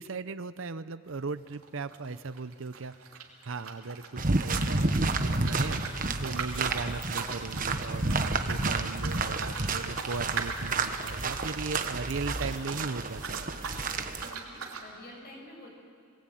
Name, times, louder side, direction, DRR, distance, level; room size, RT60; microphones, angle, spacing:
voice 1, 0.0-2.9 3.4-13.4, right 4 dB, 60° right, 13 dB, 0.7 m, -37 dB
sound 1, 1.1-1.3 1.5-4.1 4.4-12.9 13.2-13.9 14.2-14.9, right 5 dB, 80° right, 3.0 m, -39 dB
sound 2, 4.2-14.3, right 3 dB, 35° right, 1.2 m, -30 dB
voice 2, 13.9-15.7, left 1 dB, 45° left, -1 dB, 6.6 m, -49 dB
26.5 x 20.0 x 9.1 m, 2.3 s
head